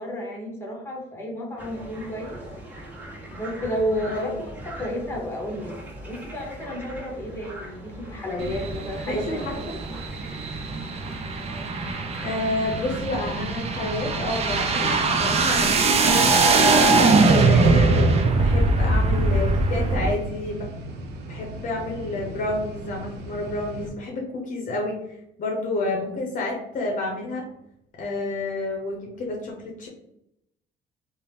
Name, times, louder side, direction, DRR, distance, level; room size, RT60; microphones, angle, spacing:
voice 1, 0.0-2.4 3.3-5.8 6.0-9.6 9.9-10.0, equal, 15° left, -1 dB, 0.9 m, -31 dB
sound 1, 1.6-13.0, right 1 dB, 10° right, 1.1 m, -41 dB
sound 2, 8.4-20.1, right 3 dB, 40° right, 0.5 m, -21 dB
voice 2, 9.0-9.6 12.2-16.9 17.4-20.7 21.3-27.5 28.0-29.9, left 2 dB, 50° left, 1 dB, 0.7 m, -30 dB
sound 3, 12.7-23.9, right 2 dB, 85° right, 0.6 m, -38 dB
2.7 x 2.0 x 3.3 m, 0.78 s
cardioid pair, 110°, 17 cm